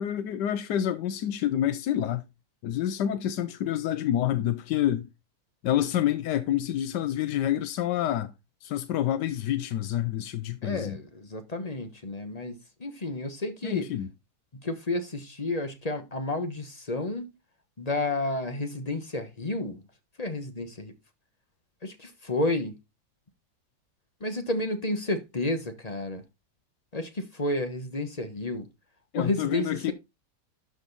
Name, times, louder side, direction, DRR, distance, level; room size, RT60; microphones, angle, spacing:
voice 1, 0.0-2.2 2.6-5.1 5.6-8.3 8.6-11.0 13.6-14.1 29.1-29.9, left 11 dB, 90° left, 1.3 m, -28 dB
voice 2, 10.6-13.9 14.6-17.3 17.8-19.8 20.2-20.9 21.8-22.7 24.2-26.2 26.9-28.7 29.2-29.9, left 2 dB, 25° left, 1.0 m, -31 dB
12.5 x 5.2 x 3.9 m
omnidirectional pair, 1.8 m